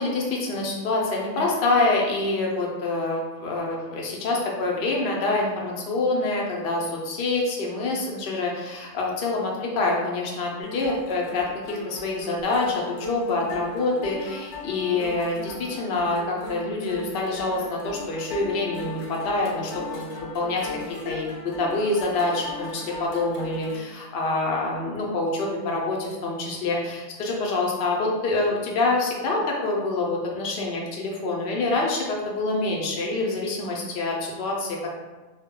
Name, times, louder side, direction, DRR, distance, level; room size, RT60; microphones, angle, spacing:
voice 1, 0.0-35.0, left 2 dB, 60° left, -2 dB, 0.7 m, -26 dB
sound 1, 10.6-23.8, left 3 dB, 80° left, 1.0 m, -37 dB
2.2 x 2.1 x 3.6 m, 1.2 s
omnidirectional pair, 1.3 m